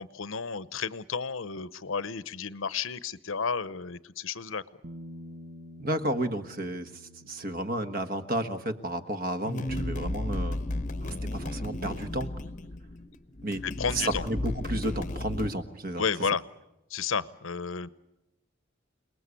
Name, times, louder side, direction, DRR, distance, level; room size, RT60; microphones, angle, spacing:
voice 1, 0.0-4.6 13.6-14.2 16.0-16.4 16.9-17.9, left 5 dB, 80° left, 16 dB, 0.9 m, -32 dB
Bass guitar, 4.8-9.6 9.9-11.1, equal, 70° right, 1.2 m, -50 dB
voice 2, 5.8-6.9 7.2-10.6 11.0-12.3 13.4-13.6 13.9-16.0, right 1 dB, 45° right, 8 dB, 1.5 m, -32 dB
sound 1, 9.4-15.5, left 1 dB, 40° left, 0.9 m, -34 dB
28.5 x 20.0 x 8.4 m, 0.92 s
head